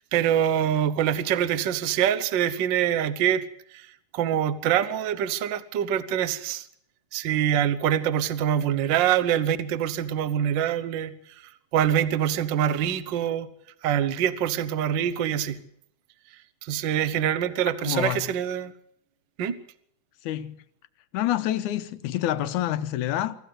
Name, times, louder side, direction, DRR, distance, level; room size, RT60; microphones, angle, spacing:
voice 1, 0.1-3.4 3.7-3.9 4.1-6.7 7.1-11.1 11.7-13.5 13.8-15.6 16.6-18.7 19.4-19.6, right 10 dB, 60° right, 1.3 m, -24 dB
voice 2, 17.8-18.3 20.2-20.6 21.1-23.4, left 13 dB, 80° left, 2.4 m, -27 dB
25.0 x 14.5 x 8.0 m
omnidirectional pair, 3.5 m